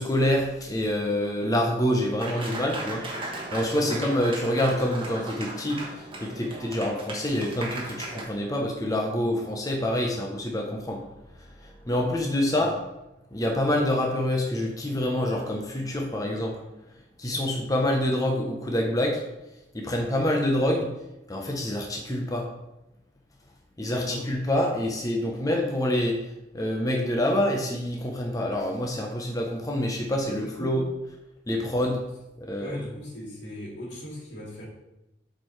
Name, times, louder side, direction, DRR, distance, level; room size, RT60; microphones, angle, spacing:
voice 1, 0.0-3.1 3.5-11.0 11.6-12.8 13.3-16.6 17.2-19.2 19.7-20.9 21.3-22.5 23.8-26.2 26.5-30.8 31.5-32.0 32.4-32.8, left 1 dB, 20° left, 0 dB, 0.8 m, -26 dB
Applause, 2.2-8.2, right 2 dB, 30° right, 1.2 m, -37 dB
voice 2, 3.7-4.1 12.6-12.7 17.3-17.6 23.9-24.3 30.2-30.8 32.6-34.7, equal, 85° left, -4 dB, 2.4 m, -38 dB
8.0 x 4.5 x 3.2 m, 0.96 s
head